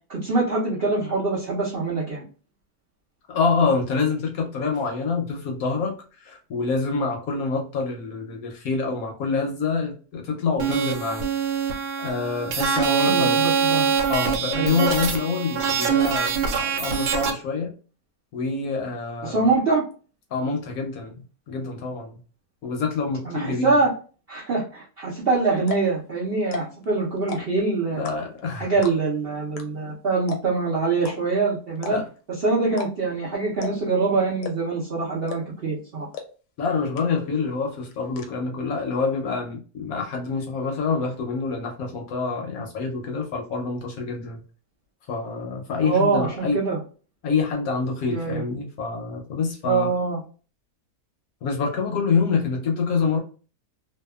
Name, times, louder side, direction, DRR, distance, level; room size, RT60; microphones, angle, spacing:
voice 1, 0.1-2.2 13.0-13.9 14.5-14.8 19.2-19.8 23.2-23.9 24.3-28.0 28.5-36.1 45.8-46.8 48.1-48.4 49.6-50.2, right 3 dB, 65° right, 0.6 m, -24 dB
voice 2, 3.3-5.9 6.2-11.3 12.0-13.4 14.1-17.7 18.3-19.4 20.3-22.2 22.6-23.8 27.3-27.4 27.9-28.7 31.9-32.0 36.6-44.4 45.1-46.6 47.2-49.9 51.4-53.2, left 4 dB, 70° left, 1.0 m, -26 dB
sound 1, 10.6-17.3, right 6 dB, 80° right, 1.2 m, -24 dB
sound 2, 25.1-25.2 25.6-25.9 26.4-26.8 27.2-27.6 28.0-28.4 28.8-29.2 29.6-29.7 29.9-30.0 30.3-30.6 31.0-31.2 31.8-32.2 32.7-32.9 33.2-33.3 33.6-33.9 34.4-34.8 35.3-35.6 36.1-36.2 36.6-36.7 37.0-37.4 37.7-38.3, left 5 dB, 90° left, 1.2 m, -34 dB
2.7 x 2.2 x 2.2 m
omnidirectional pair, 1.8 m